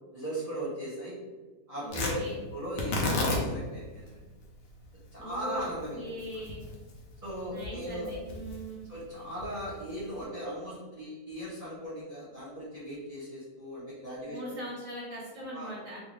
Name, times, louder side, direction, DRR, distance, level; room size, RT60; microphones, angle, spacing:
voice 1, 0.1-1.2 1.7-2.1 2.5-4.3 5.1-6.0 7.2-8.1 8.9-14.4 15.5-15.7, right 1 dB, 30° right, -11 dB, 0.9 m, -38 dB
voice 2, 1.8-2.3 5.2-5.7 5.9-6.6 7.5-8.9 14.3-16.0, equal, 10° left, -8 dB, 0.6 m, -40 dB
Tearing, 1.9-10.2, left 2 dB, 70° left, 0.5 m, -35 dB
2.6 x 2.5 x 3.1 m, 1.3 s
omnidirectional pair, 1.7 m